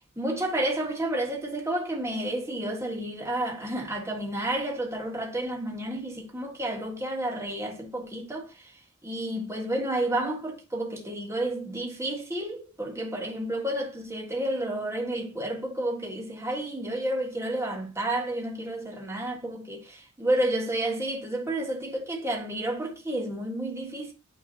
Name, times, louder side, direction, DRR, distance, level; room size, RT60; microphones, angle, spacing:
voice 1, 0.2-8.7 9.0-24.1, right 1 dB, 15° right, 1.5 m, -31 dB
8.9 x 3.9 x 2.8 m
head